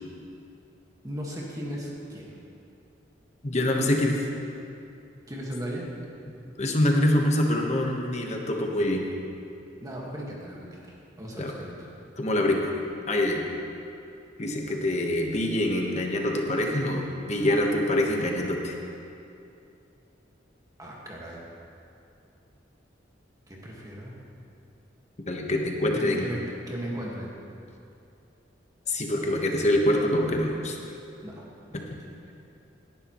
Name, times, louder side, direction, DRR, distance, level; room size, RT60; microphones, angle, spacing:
voice 1, 1.0-2.3 3.8-4.0 5.3-5.9 9.8-11.9 20.8-21.4 23.5-24.1 25.9-26.4 26.7-27.3 31.2-31.8, equal, 20° right, -3 dB, 1.7 m, -37 dB
voice 2, 3.4-4.1 6.6-9.1 11.4-11.5 12.2-12.7 13.1-13.4 14.4-18.8 25.3-26.3 28.9-30.8, left 1 dB, 40° left, 1 dB, 1.2 m, -25 dB
17.5 x 11.0 x 3.1 m, 2.7 s
head